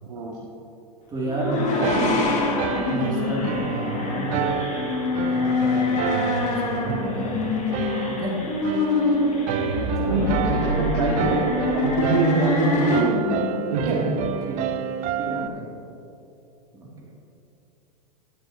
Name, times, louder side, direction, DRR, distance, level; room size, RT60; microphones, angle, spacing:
voice 1, 1.1-2.0 2.8-4.6 5.2-7.6 8.1-8.4 9.9-10.3 13.9-14.2 14.4-14.8 15.1-15.7 16.7-17.1, right 2 dB, 20° right, -4 dB, 2.5 m, -31 dB
sound 1, 1.2-13.0, left 3 dB, 35° left, 2.1 m, -26 dB
sound 2, 1.8-15.5, right 8 dB, 35° right, 0.5 m, -30 dB
voice 2, 1.9-2.3 10.1-11.4 11.7-14.0, right 2 dB, 75° right, -5 dB, 2.1 m, -23 dB
sound 3, 9.5-11.3, right 3 dB, 55° right, 2.4 m, -28 dB
21.0 x 8.0 x 2.8 m, 2.9 s
hypercardioid pair, 110°, 20 cm